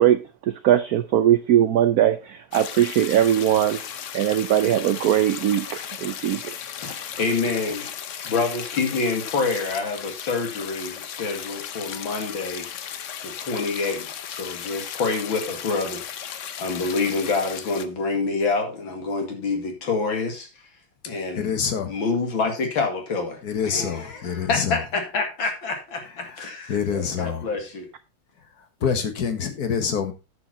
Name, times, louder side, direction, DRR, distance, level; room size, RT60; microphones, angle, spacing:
voice 1, 0.0-3.8 4.1-6.5, right 11 dB, 85° right, 0.8 m, -20 dB
sound 1, 2.5-17.9, left 9 dB, 85° left, 0.6 m, -36 dB
voice 2, 6.8-7.9 8.2-16.0 16.6-20.7 21.1-21.5 21.9-27.9, left 4 dB, 70° left, 2.9 m, -27 dB
voice 3, 21.4-21.9 23.4-24.8 26.2-26.4 26.7-27.5 28.6-30.1, left 7 dB, 50° left, 1.7 m, -26 dB
9.4 x 7.0 x 4.1 m
omnidirectional pair, 2.3 m